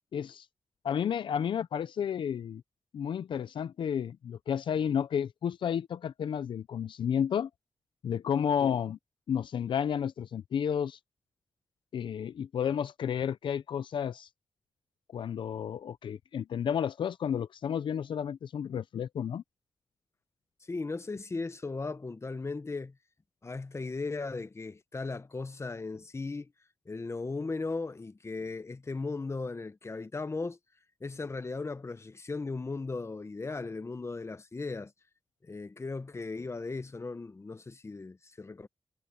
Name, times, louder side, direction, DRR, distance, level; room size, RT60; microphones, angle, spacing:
voice 1, 0.1-0.5 0.8-2.6 2.9-7.5 8.0-9.0 9.3-11.0 11.9-14.3 15.1-19.4, left 8 dB, 80° left, 0.5 m, -31 dB
voice 2, 20.7-22.9 23.4-26.5 26.9-30.6 31.0-34.9 35.4-38.7, left 3 dB, 35° left, 1.1 m, -37 dB
cardioid pair, 65°, 8 cm